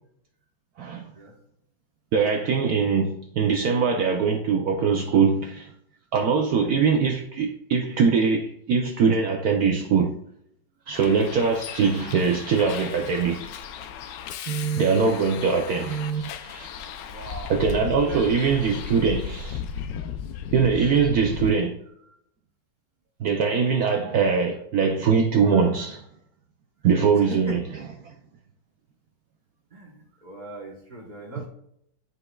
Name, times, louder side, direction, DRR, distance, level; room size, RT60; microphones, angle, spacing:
voice 1, 2.1-5.7 6.1-10.1 10.9-13.4 14.5-16.7 17.5-19.6 20.5-21.8 23.2-26.0 26.8-27.6 31.4-31.5, right 5 dB, 75° right, 0.8 m, -22 dB
Bus, 10.9-21.5, left 8 dB, 75° left, 1.1 m, -36 dB
voice 2, 14.9-15.3 16.8-18.2 20.5-20.7 27.2-27.6 29.7-31.5, right 1 dB, 35° right, 0.9 m, -40 dB
9.9 x 5.4 x 2.3 m
omnidirectional pair, 2.1 m